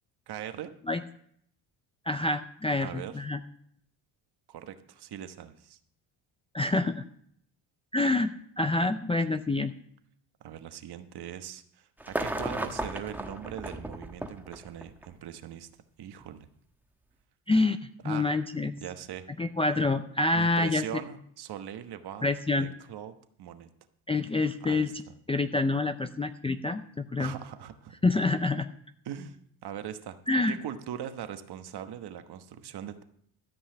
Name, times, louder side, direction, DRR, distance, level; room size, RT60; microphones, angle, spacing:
voice 1, 0.3-0.7 2.8-3.2 4.5-5.8 10.4-15.7 16.0-16.5 18.0-18.3 18.8-19.2 20.3-22.3 22.5-23.1 23.4-23.7 24.6-25.1 27.2-27.9 29.0-29.4 29.6-30.2 30.5-33.0, right 10 dB, 50° right, 9 dB, 1.2 m, -40 dB
voice 2, 2.1-3.4 6.5-7.0 7.9-8.3 8.6-9.7 17.5-17.8 18.0-18.8 19.4-20.8 22.2-22.7 24.1-24.9 25.3-27.3 28.0-28.7 30.3-30.6, left 2 dB, 15° left, 10 dB, 0.4 m, -27 dB
sound 1, 12.0-15.1 16.2-16.3, right 1 dB, 5° right, 1.2 m, -35 dB
13.5 x 5.6 x 7.7 m, 0.66 s
cardioid pair, 100°, 49 cm